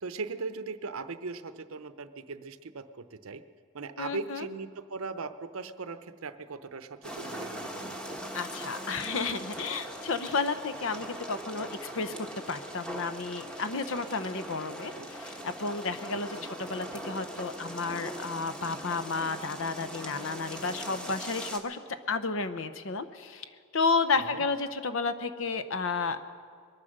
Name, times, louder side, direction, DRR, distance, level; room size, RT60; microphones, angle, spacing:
voice 1, 0.0-3.4 3.7-8.2 15.0-15.1 16.3-16.5 24.2-24.4, right 4 dB, 70° right, 11 dB, 0.7 m, -39 dB
voice 2, 4.0-4.5 8.3-12.1 12.5-21.8 22.1-23.5 23.7-26.2, left 4 dB, 60° left, 11 dB, 0.8 m, -32 dB
sound 1, 7.0-21.6, right 1 dB, 5° left, 1.1 m, -41 dB
22.0 x 9.8 x 6.6 m, 2.2 s
head